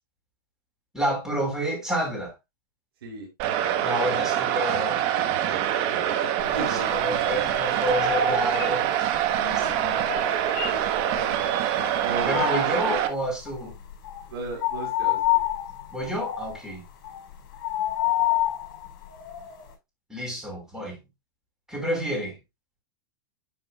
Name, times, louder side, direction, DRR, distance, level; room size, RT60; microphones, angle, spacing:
voice 1, 0.9-2.3 3.8-5.0 6.5-8.8 9.4-10.0 12.3-13.7 15.9-16.8 20.1-21.0 21.7-22.4, equal, 5° right, 4.6 m, -29 dB
sound 1, 3.4-13.1, right 11 dB, 50° right, 1.3 m, -25 dB
sound 2, 6.4-7.1 7.4-11.3 11.7-13.1 13.4-13.7 13.9-19.7, left 11 dB, 55° left, 5.0 m, -29 dB
voice 2, 6.5-7.9 9.6-9.9 10.2-10.3 10.7-11.5 12.0-12.9 14.3-15.4, right 3 dB, 90° right, 4.4 m, -37 dB
10.5 x 5.6 x 2.3 m
supercardioid pair, 130°, 12 cm